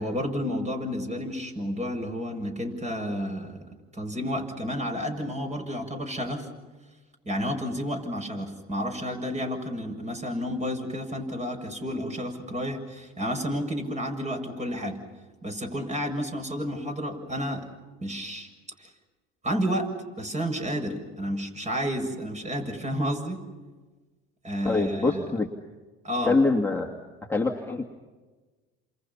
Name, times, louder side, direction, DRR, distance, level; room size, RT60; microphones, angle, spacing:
voice 1, 0.0-3.7 3.9-6.5 7.3-15.0 15.4-17.6 18.0-18.5 18.8-18.9 19.4-19.9 20.2-23.4 24.4-25.2 26.0-26.4, equal, 25° right, 4 dB, 7.4 m, -31 dB
voice 2, 24.6-25.5 26.2-26.9 27.3-27.8, left 3 dB, 5° left, 0 dB, 2.5 m, -24 dB
29.5 x 28.0 x 5.7 m, 1.3 s
hypercardioid pair, 75°, 30 cm